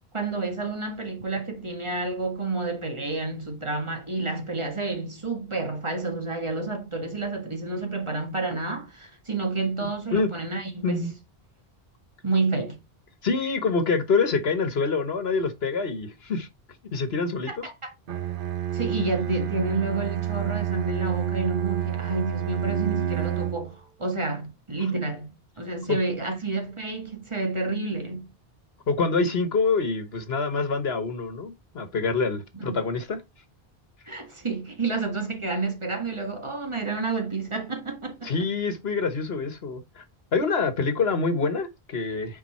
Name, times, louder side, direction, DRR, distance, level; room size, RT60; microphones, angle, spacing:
voice 1, 0.1-11.1 12.2-12.8 17.5-17.9 18.7-28.3 32.5-32.8 34.1-38.3, right 3 dB, 30° right, 1.7 m, -30 dB
voice 2, 13.2-16.5 16.9-17.6 25.9-26.0 28.9-33.2 38.2-40.0 40.3-42.4, left 4 dB, 80° left, 1.5 m, -26 dB
Bowed string instrument, 18.1-23.8, right 11 dB, 60° right, 0.9 m, -29 dB
9.2 x 4.6 x 4.3 m
omnidirectional pair, 1.0 m